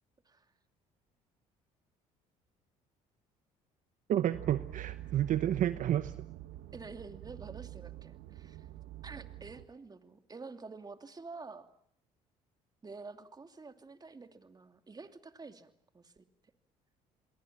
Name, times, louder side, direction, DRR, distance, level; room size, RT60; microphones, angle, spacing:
voice 1, 4.1-6.3, right 11 dB, 55° right, 12 dB, 1.1 m, -30 dB
sound 1, 4.3-9.6, right 15 dB, 70° right, 1.8 m, -46 dB
voice 2, 6.7-8.7 9.0-11.7 12.8-16.2, right 4 dB, 25° right, 7 dB, 2.7 m, -49 dB
28.5 x 22.5 x 7.3 m, 0.70 s
supercardioid pair, 70°, 16 cm